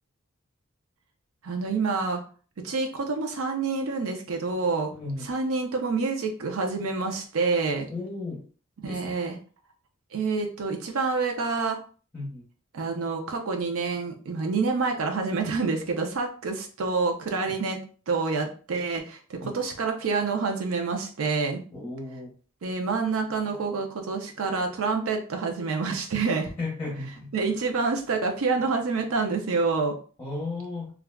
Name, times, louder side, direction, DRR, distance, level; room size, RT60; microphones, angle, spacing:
voice 1, 1.4-2.2 2.6-4.9 5.2-7.9 8.8-9.4 10.1-11.8 12.7-17.8 18.1-21.6 22.6-26.5 27.3-30.0, right 4 dB, 85° right, 3 dB, 0.5 m, -27 dB
voice 2, 4.9-5.3 7.9-8.4 8.8-9.2 12.1-12.4 17.5-17.6 19.4-19.6 21.7-22.3 26.6-27.3 30.2-30.9, left 2 dB, 15° left, -5 dB, 0.8 m, -34 dB
3.4 x 2.3 x 2.2 m, 0.39 s
head